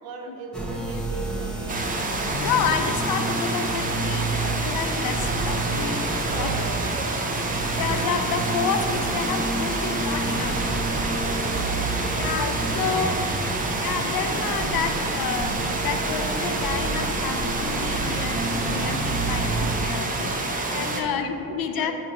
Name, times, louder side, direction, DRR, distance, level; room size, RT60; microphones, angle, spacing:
voice 1, 0.0-1.9 6.3-7.6 10.9-12.5 12.8-13.2 20.7-21.9, right 4 dB, 90° right, 3 dB, 0.8 m, -39 dB
sound 1, 0.5-19.9, right 2 dB, ahead, 0.9 m, -30 dB
sound 2, 1.7-21.0, right 3 dB, 25° right, 0.6 m, -28 dB
voice 2, 2.4-6.0 6.3-6.7 7.8-10.7 12.1-13.1 13.8-15.5 15.8-21.9, left 6 dB, 75° left, 7 dB, 0.6 m, -29 dB
6.4 x 2.8 x 5.4 m, 2.7 s
cardioid pair, 100°, 36 cm